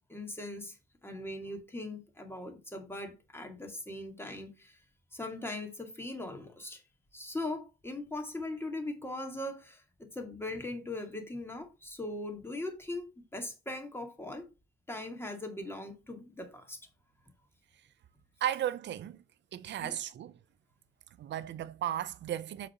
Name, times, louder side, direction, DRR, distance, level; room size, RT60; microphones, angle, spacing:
voice 1, 0.1-0.8 1.0-4.8 5.1-6.8 7.1-13.1 13.3-14.4 14.9-16.9 19.8-20.0, left 2 dB, 10° left, 2.3 m, -40 dB
voice 2, 18.4-19.2 19.5-20.3 21.2-22.7, right 11 dB, 65° right, 0.6 m, -35 dB
6.5 x 4.1 x 5.7 m
cardioid pair, 90°, 20 cm